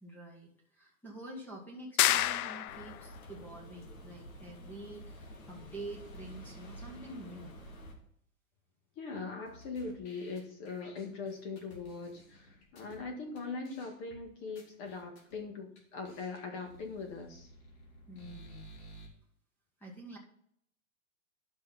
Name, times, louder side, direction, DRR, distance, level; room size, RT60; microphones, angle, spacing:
voice 1, 0.0-7.6 18.1-18.7 19.8-20.2, right 2 dB, 5° left, 0 dB, 1.6 m, -47 dB
sound 1, 2.0-3.1, left 13 dB, 90° left, 0.6 m, -28 dB
sound 2, 2.7-7.9, equal, 70° left, 2.6 m, -49 dB
voice 2, 9.0-17.5, left 4 dB, 30° left, 4 dB, 1.7 m, -41 dB
sound 3, 9.5-13.0 13.4-13.5 13.6-14.2 14.6-15.4 15.8-15.9 16.0-19.1, right 1 dB, 50° left, 3.3 m, -54 dB
11.5 x 6.3 x 4.2 m, 0.68 s
supercardioid pair, 160°, 42 cm